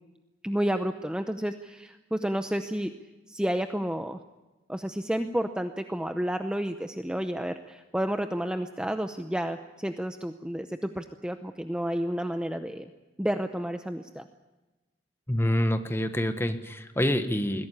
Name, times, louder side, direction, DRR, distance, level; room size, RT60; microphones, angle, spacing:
voice 1, 0.4-2.9 3.3-4.2 4.7-12.9 13.2-14.3, equal, 5° right, 7 dB, 0.7 m, -31 dB
voice 2, 15.3-17.7, left 1 dB, 15° left, 8 dB, 1.3 m, -26 dB
21.5 x 16.5 x 9.9 m, 1.1 s
head